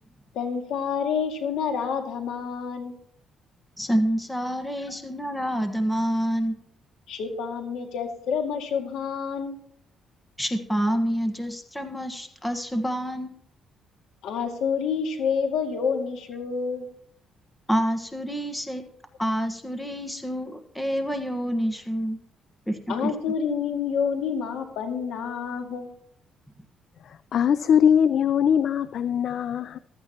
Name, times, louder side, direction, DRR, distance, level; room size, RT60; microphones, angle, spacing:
voice 1, 0.3-3.0 7.1-9.6 14.2-16.9 22.9-25.9, left 6 dB, 80° left, 2.0 m, -28 dB
voice 2, 3.8-6.5 10.4-13.3 17.7-18.8 19.2-22.2 22.7-23.1, equal, 5° left, 1.4 m, -27 dB
voice 3, 27.0-29.8, left 8 dB, 60° left, 0.3 m, -21 dB
15.5 x 13.0 x 2.9 m
cardioid pair, 105°, 0 cm